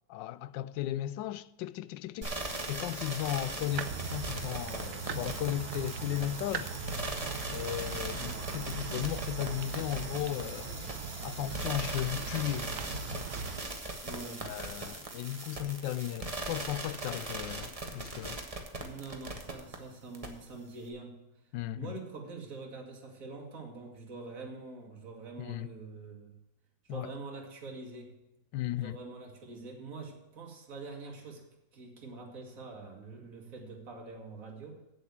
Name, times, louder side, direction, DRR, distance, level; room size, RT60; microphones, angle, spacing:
voice 1, 0.1-6.9 7.5-13.3 14.4-18.4 21.5-21.9 25.4-25.7 26.9-27.1 28.5-29.0, left 13 dB, 85° left, 1.2 m, -36 dB
sound 1, 2.2-19.8 20.1-20.3, right 2 dB, 20° right, 1.3 m, -39 dB
sound 2, 3.7-13.6, right 6 dB, 65° right, 1.1 m, -40 dB
voice 2, 14.0-14.5 18.8-21.2 21.7-26.4 26.8-28.2 28.8-31.4 31.7-34.8, right 3 dB, 50° right, 2.3 m, -45 dB
8.2 x 7.8 x 7.9 m
omnidirectional pair, 1.9 m